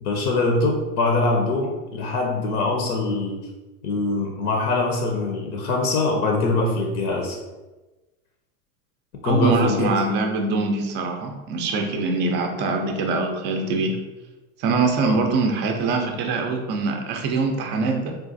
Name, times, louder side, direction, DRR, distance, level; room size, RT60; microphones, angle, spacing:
voice 1, 0.0-3.4 3.8-7.4 9.2-9.9 15.0-15.1, left 2 dB, 80° left, 1 dB, 0.8 m, -23 dB
voice 2, 9.2-14.0 14.6-18.2, right 3 dB, 25° right, 4 dB, 0.4 m, -23 dB
3.8 x 2.4 x 2.6 m, 1.1 s
hypercardioid pair, 115°, 43 cm